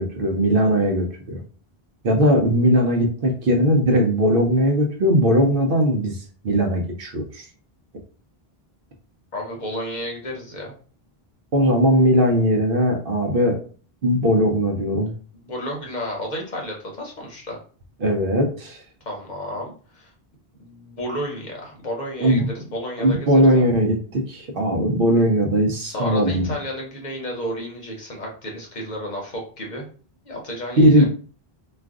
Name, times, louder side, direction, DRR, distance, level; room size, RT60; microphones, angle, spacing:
voice 1, 0.0-1.4 2.0-7.4 11.5-13.6 14.0-15.1 18.0-18.8 22.2-22.5 23.0-26.5 30.8-31.1, equal, 65° right, 3 dB, 0.8 m, -19 dB
voice 2, 9.3-10.7 15.3-17.6 19.1-20.1 20.6-23.7 25.8-29.8 30.2-31.1, equal, 50° left, 0 dB, 0.9 m, -32 dB
2.4 x 2.3 x 3.5 m, 0.41 s
omnidirectional pair, 1.0 m